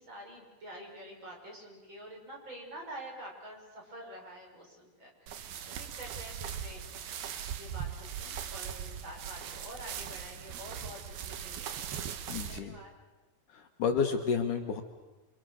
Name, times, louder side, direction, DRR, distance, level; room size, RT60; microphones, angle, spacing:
voice 1, 0.0-6.8 7.6-11.8 12.5-12.9, right 1 dB, 30° right, -1 dB, 6.9 m, -47 dB
sound 1, 5.3-12.6, right 8 dB, 80° right, 3.3 m, -40 dB
voice 2, 12.3-12.8 13.5-14.8, left 6 dB, 65° left, 5 dB, 2.7 m, -31 dB
28.0 x 27.5 x 6.6 m, 1.2 s
omnidirectional pair, 4.3 m